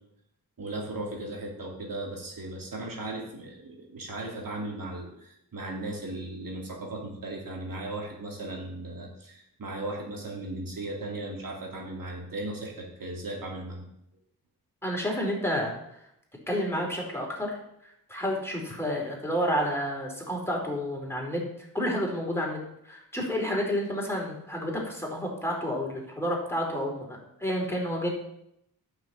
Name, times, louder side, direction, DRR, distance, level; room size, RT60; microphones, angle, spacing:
voice 1, 0.6-13.9, right 2 dB, 60° right, -2 dB, 3.2 m, -37 dB
voice 2, 14.8-15.7 16.5-17.5 17.8-21.4 21.7-22.6 22.8-28.1, equal, 5° left, -1 dB, 4.6 m, -30 dB
9.6 x 6.6 x 7.9 m, 0.79 s
cardioid pair, 55°, 38 cm